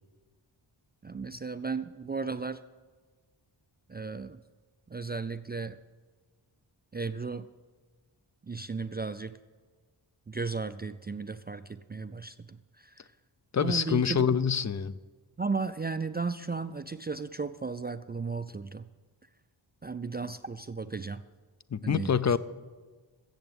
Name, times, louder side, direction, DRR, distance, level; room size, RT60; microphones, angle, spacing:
voice 1, 1.0-2.6 3.9-4.4 4.9-5.8 6.9-7.5 8.5-9.4 10.3-13.1 13.6-14.2 15.4-18.9 19.8-21.2 21.8-22.4, right 4 dB, 25° right, 0.3 m, -35 dB
voice 2, 13.5-15.0 21.7-22.4, left 7 dB, 40° left, 0.5 m, -26 dB
14.5 x 7.8 x 8.0 m
wide cardioid pair, 85°, 47 cm